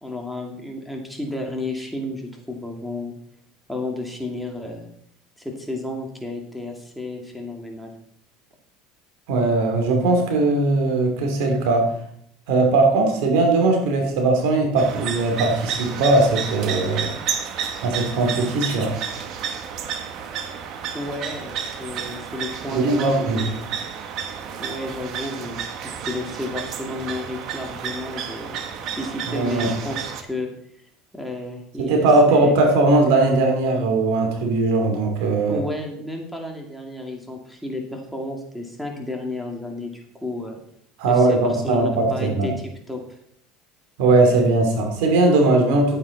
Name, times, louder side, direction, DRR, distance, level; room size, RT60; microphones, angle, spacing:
voice 1, 0.0-3.1 3.7-4.9 5.4-7.9 20.9-23.6 24.6-30.5 31.1-32.0 32.3-32.6 35.5-40.6 41.1-43.0, left 2 dB, ahead, 0 dB, 2.3 m, -32 dB
voice 2, 9.3-11.9 12.5-17.1 17.8-18.9 22.7-23.4 29.3-29.7 31.8-35.6 41.0-42.5 44.0-46.0, right 2 dB, 75° right, 3 dB, 3.0 m, -19 dB
sound 1, 14.8-30.2, right 7 dB, 55° right, 1.4 m, -31 dB
11.0 x 9.4 x 4.1 m, 0.67 s
supercardioid pair, 115°, 0 cm